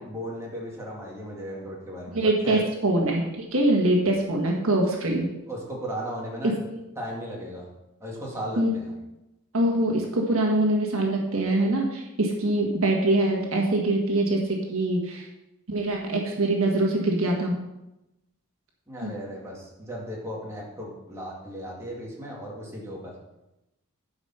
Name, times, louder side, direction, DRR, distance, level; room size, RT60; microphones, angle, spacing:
voice 1, 0.0-2.6 5.5-6.5 7.0-7.7 8.0-8.9 18.9-23.1, equal, 15° right, -4 dB, 2.2 m, -36 dB
voice 2, 2.1-5.2 6.7-6.8 8.6-8.8 9.5-15.3 15.7-17.5 19.0-19.1, right 1 dB, 65° right, 0 dB, 1.6 m, -24 dB
11.5 x 5.3 x 5.7 m, 0.94 s
head